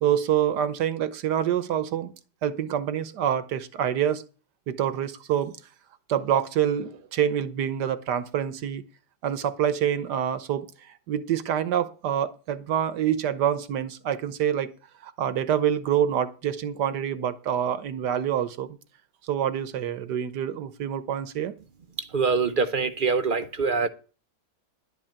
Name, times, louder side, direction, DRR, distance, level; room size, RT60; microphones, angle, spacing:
voice 1, 0.0-2.1 2.4-4.2 4.7-5.5 6.1-8.8 9.2-14.7 15.0-18.8 19.2-21.5, right 9 dB, 80° right, 1.6 m, -26 dB
voice 2, 22.1-23.9, right 4 dB, 45° right, 0.7 m, -24 dB
11.5 x 5.5 x 8.8 m
omnidirectional pair, 1.8 m